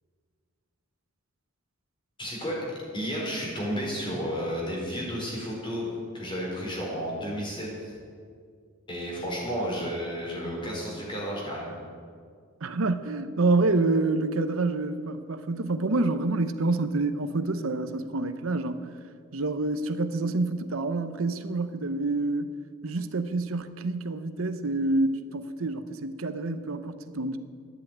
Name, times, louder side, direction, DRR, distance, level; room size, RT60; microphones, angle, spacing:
voice 1, 2.2-2.6 2.9-7.9 8.9-11.8, equal, 25° left, -3 dB, 4.6 m, -32 dB
voice 2, 12.6-18.9 19.3-22.5 22.8-27.4, right 2 dB, 80° right, 10 dB, 0.8 m, -27 dB
12.5 x 10.0 x 9.2 m, 2.1 s
head